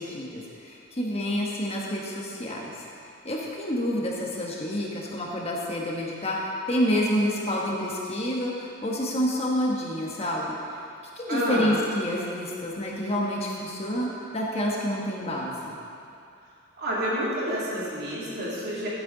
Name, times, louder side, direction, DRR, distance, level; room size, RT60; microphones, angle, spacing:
voice 1, 0.0-2.7 3.2-10.5 11.2-15.8, equal, 30° left, -3 dB, 1.4 m, -28 dB
voice 2, 11.3-11.8 16.8-18.9, equal, 55° right, -7 dB, 2.8 m, -28 dB
13.0 x 8.7 x 4.0 m, 2.6 s
head